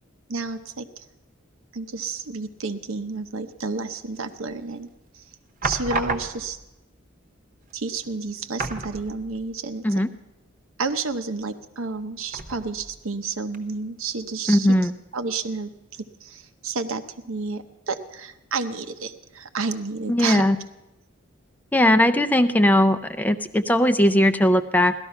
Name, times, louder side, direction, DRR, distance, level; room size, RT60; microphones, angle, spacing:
voice 1, 0.3-1.1 1.7-4.9 5.1-5.2 5.6-6.6 7.7-9.8 10.8-14.7 15.1-20.4, right 4 dB, 90° right, 9 dB, 0.9 m, -30 dB
sound 1, 4.4-4.8 5.6-6.7 7.6-7.7 8.0-8.2 8.6-9.5 9.9-10.0 12.3-13.0 13.5-13.6, right 3 dB, 40° right, 1.0 m, -31 dB
voice 2, 14.5-14.9 20.1-20.6 21.7-24.9, left 1 dB, 10° left, 11 dB, 0.4 m, -19 dB
17.0 x 13.0 x 5.7 m, 1.0 s
head